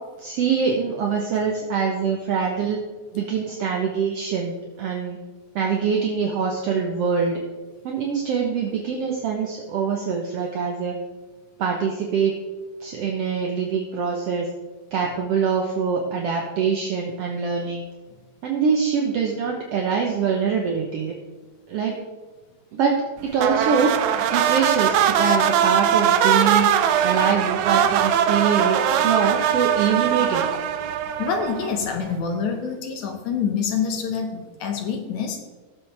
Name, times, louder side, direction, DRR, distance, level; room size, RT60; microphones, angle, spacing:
voice 1, 0.2-2.8 3.1-5.2 5.6-7.4 7.8-11.0 11.6-12.3 12.8-14.5 14.9-17.9 18.4-21.2 21.7-22.0 22.7-23.9 24.3-26.7 27.0-30.4, right 6 dB, 65° right, 0 dB, 1.9 m, -24 dB
sound 1, 23.4-31.8, right 9 dB, 80° right, 2.1 m, -21 dB
voice 2, 31.2-35.4, left 6 dB, 80° left, 4 dB, 2.6 m, -26 dB
17.0 x 7.6 x 3.4 m, 1.2 s
omnidirectional pair, 3.3 m